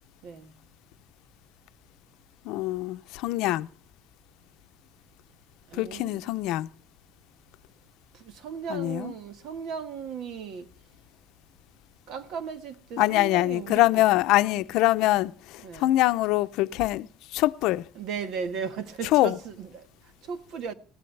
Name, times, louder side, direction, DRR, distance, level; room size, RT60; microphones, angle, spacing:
voice 1, 2.4-3.7 5.7-6.7 8.7-9.1 13.0-17.8 19.1-19.4, left 16 dB, 70° left, 0.6 m, -24 dB
voice 2, 5.7-6.2 8.1-10.7 12.1-13.9 15.6-15.9 18.0-20.7, right 6 dB, 60° right, 1.5 m, -36 dB
20.5 x 16.5 x 3.3 m
cardioid pair, 165°, 0 cm